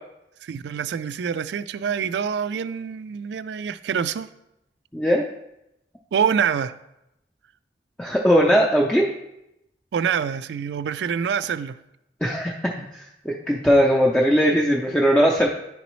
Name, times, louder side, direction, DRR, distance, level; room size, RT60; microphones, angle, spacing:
voice 1, 0.4-4.3 6.1-6.7 9.9-11.8, right 7 dB, 80° right, 14 dB, 0.3 m, -26 dB
voice 2, 4.9-5.2 8.0-9.0 12.2-12.5 12.9-15.5, equal, 5° left, -2 dB, 0.4 m, -19 dB
11.0 x 4.0 x 3.0 m, 0.86 s
head